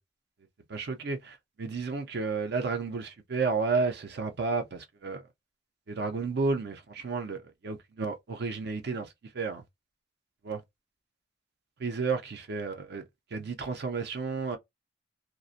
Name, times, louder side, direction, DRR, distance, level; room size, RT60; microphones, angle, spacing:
voice 1, 0.7-5.2 5.9-9.1 9.3-9.6 10.4-10.6 11.8-13.0 13.3-14.6, right 4 dB, 55° right, 0.5 m, -32 dB
2.4 x 2.1 x 2.5 m
head